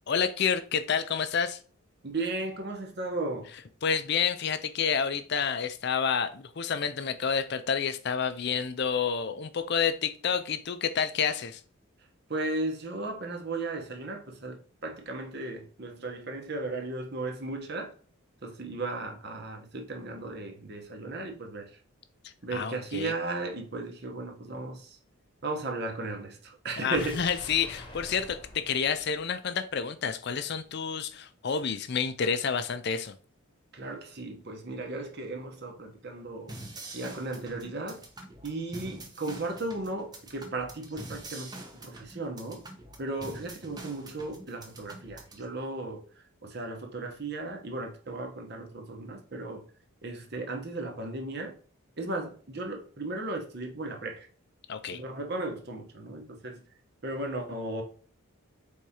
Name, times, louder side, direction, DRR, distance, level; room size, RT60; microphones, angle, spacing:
voice 1, 0.1-1.6 3.8-11.6 22.5-23.1 26.8-33.1 54.7-55.0, left 6 dB, 50° left, 0.4 m, -29 dB
voice 2, 2.0-3.5 12.3-17.9 18.4-21.8 22.4-25.0 25.4-27.2 33.7-36.5 36.9-38.0 38.4-42.6 43.0-46.0 46.4-49.7 50.0-51.6 52.0-54.3 54.9-56.6 57.0-57.8, right 2 dB, 50° right, 0.9 m, -35 dB
sound 1, 26.9-30.1 30.4-30.5, left 1 dB, 20° left, 0.8 m, -47 dB
sound 2, 36.5-45.4, right 2 dB, 20° right, 0.7 m, -45 dB
4.7 x 3.6 x 2.8 m
head